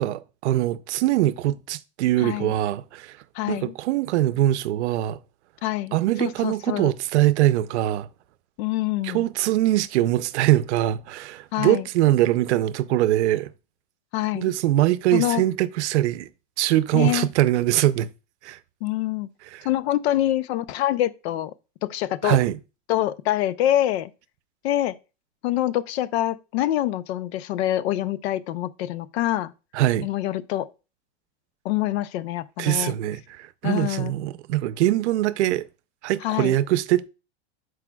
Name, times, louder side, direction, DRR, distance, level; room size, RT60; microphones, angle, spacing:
voice 1, 0.0-3.2 3.5-5.2 5.9-8.1 9.0-13.5 14.3-16.3 16.6-18.1 18.4-18.6 19.5-19.7 22.2-22.6 29.7-30.1 32.6-35.7 36.0-37.1, right 14 dB, 85° right, 0.6 m, -22 dB
voice 2, 2.2-2.5 3.3-3.7 5.6-6.9 8.6-9.3 11.5-11.9 14.1-14.5 15.1-15.4 16.9-17.3 18.8-19.3 19.6-21.5 21.8-22.4 22.9-24.1 24.6-25.0 25.4-29.5 30.0-30.7 31.6-33.0 33.6-34.1 36.2-36.6, left 13 dB, 70° left, 0.6 m, -25 dB
12.0 x 4.8 x 2.3 m
supercardioid pair, 155°, 34 cm